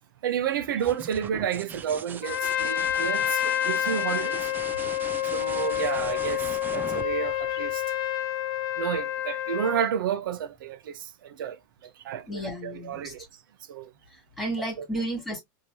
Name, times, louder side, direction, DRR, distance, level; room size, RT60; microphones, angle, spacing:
voice 1, 0.2-4.5 5.3-7.8 8.8-13.2 13.7-13.9 14.8-14.9, right 8 dB, 85° right, 0.8 m, -31 dB
sound 1, 0.7-8.2 10.0-10.6, right 7 dB, 15° right, 0.3 m, -41 dB
Trumpet, 2.2-9.9, left 11 dB, 70° left, 0.8 m, -28 dB
voice 2, 12.3-13.1 14.1-15.4, right 1 dB, ahead, 2.2 m, -33 dB
4.6 x 2.8 x 2.7 m
supercardioid pair, 140°, 11 cm